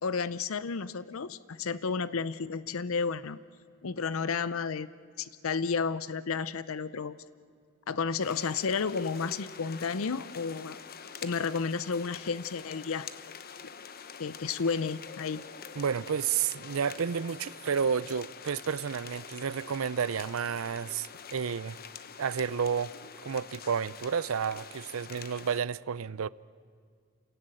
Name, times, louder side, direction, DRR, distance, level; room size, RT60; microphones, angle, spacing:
voice 1, 0.0-3.4 3.8-4.9 5.2-7.2 7.9-10.8 11.2-13.1 14.2-15.4, left 5 dB, 80° left, 0.6 m, -32 dB
sound 1, 8.2-25.6, left 6 dB, 45° left, 1.0 m, -46 dB
voice 2, 15.8-21.8 22.2-22.9 23.2-26.3, right 7 dB, 80° right, 0.5 m, -31 dB
28.5 x 17.0 x 9.0 m
head